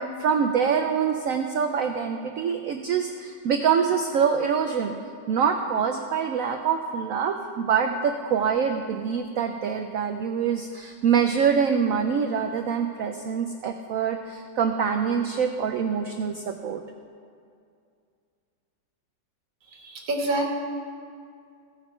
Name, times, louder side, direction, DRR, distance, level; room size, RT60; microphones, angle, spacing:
voice 1, 0.0-5.0 5.3-16.8, right 7 dB, 85° right, 5 dB, 0.7 m, -25 dB
voice 2, 19.7-20.5, right 1 dB, 50° right, -1 dB, 1.8 m, -27 dB
16.0 x 5.9 x 4.4 m, 2.3 s
omnidirectional pair, 2.0 m